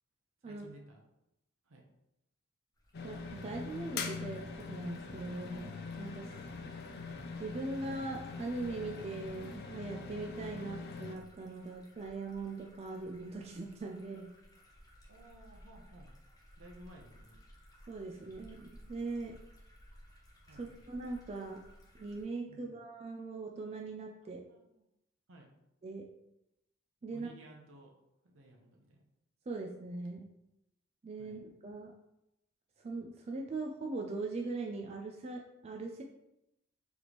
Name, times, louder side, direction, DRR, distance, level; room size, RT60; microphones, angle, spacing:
voice 1, 0.4-1.1 1.6-1.9 6.5-6.8 10.6-10.7 15.1-16.1 16.6-17.4 20.5-20.7 22.5-22.8 24.2-24.9 25.3-25.5 27.1-28.0 28.2-29.0 31.2-31.4, right 1 dB, 75° right, 1 dB, 0.8 m, -56 dB
sound 1, 2.7-22.2, equal, 20° left, 0.7 m, -59 dB
sound 2, 2.9-11.1, left 4 dB, 50° left, 0.4 m, -43 dB
voice 2, 3.0-6.3 7.4-14.3 17.9-19.4 20.6-21.6 22.0-24.4 25.8-26.0 27.0-27.3 29.5-30.3 31.0-31.9 32.8-36.0, right 3 dB, 30° right, 1 dB, 0.3 m, -41 dB
4.0 x 3.4 x 2.9 m, 0.87 s
head